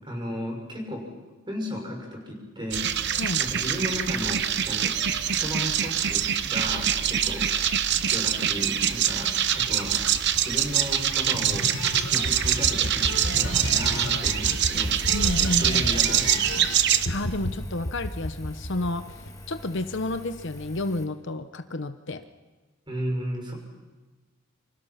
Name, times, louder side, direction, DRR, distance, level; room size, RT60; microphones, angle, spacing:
voice 1, 0.0-1.1 1.5-4.9 5.3-7.5 7.9-10.1 10.4-15.0 15.4-16.5 22.9-23.5, equal, 20° right, 2 dB, 6.2 m, -34 dB
sound 1, 2.7-17.1, right 9 dB, 55° right, 1.0 m, -24 dB
sound 2, 11.3-16.7 17.1-17.5 17.9-19.3, left 1 dB, 75° left, 4.0 m, -31 dB
Engine, 14.8-21.1, left 1 dB, 15° left, 1.8 m, -45 dB
voice 2, 15.1-15.9 17.1-19.0 19.5-22.2, left 2 dB, 55° left, 9 dB, 0.9 m, -30 dB
28.5 x 26.0 x 5.8 m, 1.2 s
head